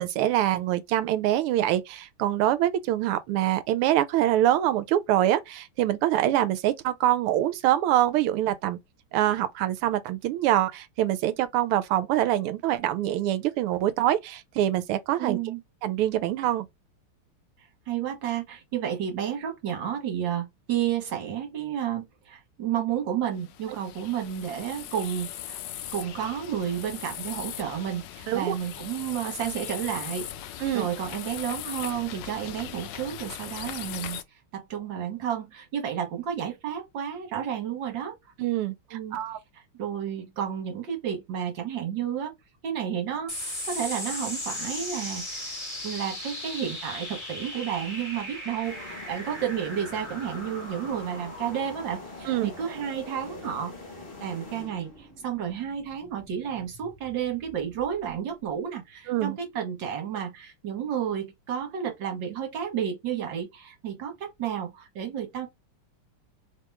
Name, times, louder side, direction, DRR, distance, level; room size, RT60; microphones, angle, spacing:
voice 1, 0.0-8.8 9.1-15.4 15.8-16.7 28.3-28.5 30.6-30.9 38.4-39.4 52.3-52.5 59.1-59.4, right 13 dB, 85° right, 1.5 m, -25 dB
voice 2, 15.2-15.6 17.9-25.6 25.9-30.3 30.7-34.2 34.5-38.1 38.9-39.2 39.5-42.3 42.6-45.6 45.8-53.7 54.2-65.5, right 9 dB, 60° right, 1.9 m, -31 dB
sound 1, 23.4-34.2, left 11 dB, 75° left, 1.0 m, -39 dB
sound 2, 43.3-58.1, left 1 dB, 15° left, 1.6 m, -39 dB
sound 3, 48.6-55.2, left 3 dB, 30° left, 1.2 m, -44 dB
3.6 x 3.0 x 3.4 m
omnidirectional pair, 2.4 m